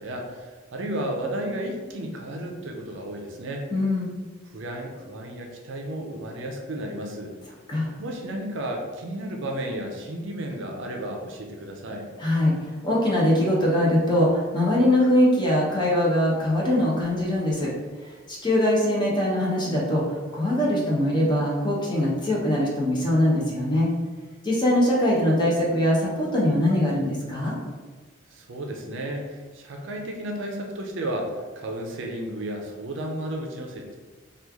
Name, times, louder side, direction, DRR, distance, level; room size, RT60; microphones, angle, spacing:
voice 1, 0.0-3.7 4.5-7.3 8.0-12.1 28.3-34.0, right 1 dB, 60° right, 2 dB, 0.5 m, -33 dB
voice 2, 3.7-4.2 7.7-7.9 12.2-12.5 12.8-17.7 18.3-23.9 24.4-27.6, left 1 dB, 20° left, -4 dB, 0.7 m, -22 dB
3.0 x 2.3 x 3.5 m, 1.3 s
head